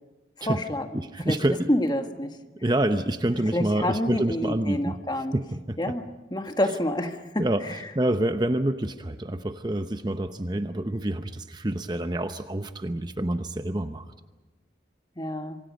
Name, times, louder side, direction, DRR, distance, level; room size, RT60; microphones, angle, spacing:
voice 1, 0.4-1.0 1.3-1.4 1.7-2.4 3.5-5.4 5.8-6.0 6.3-7.8 15.2-15.6, left 1 dB, 25° left, 6 dB, 1.5 m, -28 dB
voice 2, 0.9-1.7 2.6-4.9 5.3-5.9 7.4-14.1, right 1 dB, 25° right, 8 dB, 0.8 m, -27 dB
27.5 x 24.5 x 5.3 m, 1.2 s
head